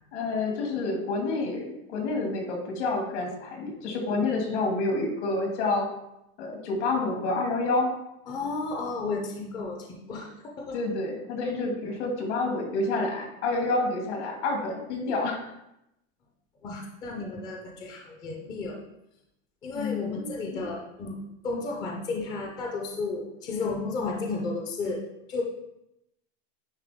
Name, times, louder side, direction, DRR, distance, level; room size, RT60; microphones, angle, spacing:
voice 1, 0.1-5.9 6.4-7.9 10.7-15.4 19.7-20.7, left 3 dB, 80° left, 1 dB, 2.1 m, -28 dB
voice 2, 8.3-10.3 10.6-10.8 16.6-18.8 19.6-25.4, left 3 dB, 15° left, 1 dB, 0.4 m, -33 dB
9.8 x 3.3 x 3.5 m, 0.84 s
supercardioid pair, 170°, 34 cm